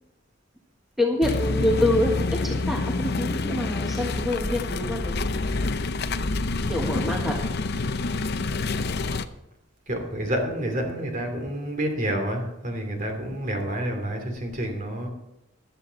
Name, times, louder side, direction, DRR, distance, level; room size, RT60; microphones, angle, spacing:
voice 1, 1.0-5.3 6.7-7.3, left 1 dB, ahead, -1 dB, 1.6 m, -26 dB
sound 1, 1.2-9.3, left 3 dB, 50° left, 0.7 m, -27 dB
voice 2, 9.9-15.1, right 1 dB, 40° right, 3 dB, 2.9 m, -29 dB
15.0 x 11.5 x 4.1 m, 0.88 s
head